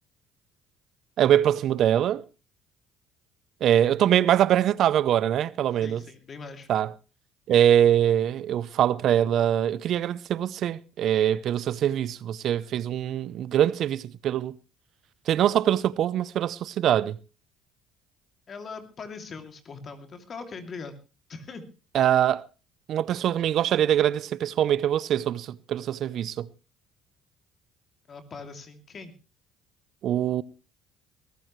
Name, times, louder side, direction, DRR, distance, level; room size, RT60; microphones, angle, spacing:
voice 1, 1.2-2.2 3.6-6.0 6.7-6.9 7.5-14.6 15.3-17.2 21.9-22.4 22.9-26.5 30.0-30.4, right 10 dB, 60° right, 0.7 m, -23 dB
voice 2, 5.8-6.7 18.5-20.9 21.3-21.6 28.1-29.1, left 4 dB, 45° left, 2.8 m, -41 dB
21.0 x 14.0 x 3.2 m
supercardioid pair, 70°, 0 cm